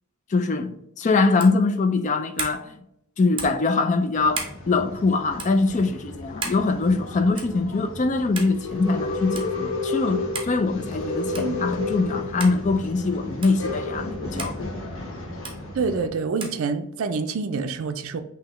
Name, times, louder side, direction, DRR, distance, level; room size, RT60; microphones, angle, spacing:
voice 1, 0.3-2.7 3.2-14.7, left 3 dB, 35° left, 0.4 m, -23 dB
sound 1, 1.4-1.6 2.4-2.6 3.4-3.6 4.3-4.6 5.4-5.5 6.4-6.6 7.4-7.6 8.4-8.5 9.4-9.5 10.3-10.6 11.3-11.6 12.4-12.6 13.4-13.6 14.4-14.6 15.4-15.6 16.4-16.6, right 4 dB, 25° right, 0.8 m, -33 dB
Male speech man speaking / Chatter / Rattle, 4.1-16.1, left 2 dB, 65° left, 1.1 m, -32 dB
voice 2, 15.7-18.2, right 4 dB, 70° right, 0.4 m, -27 dB
6.1 x 2.8 x 3.0 m
head